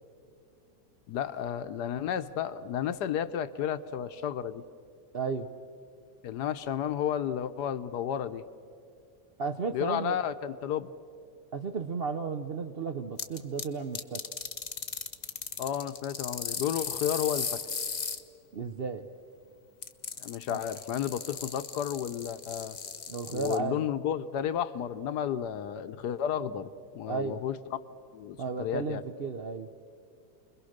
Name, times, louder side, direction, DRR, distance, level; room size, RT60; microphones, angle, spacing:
voice 1, 1.1-4.6 6.2-8.4 9.7-10.9 15.6-17.6 20.2-22.8 23.3-27.5 28.1-29.0, left 9 dB, 70° left, 12 dB, 1.3 m, -32 dB
voice 2, 5.1-5.5 9.4-10.2 11.5-14.2 18.5-19.1 20.5-20.6 23.1-23.8 27.1-27.4 28.4-29.7, right 5 dB, 55° right, 6 dB, 0.7 m, -34 dB
sound 1, 13.2-13.6 13.9-18.2 19.8-23.6, left 5 dB, 35° left, 0.7 m, -36 dB
29.5 x 22.0 x 6.5 m, 2.4 s
omnidirectional pair, 1.9 m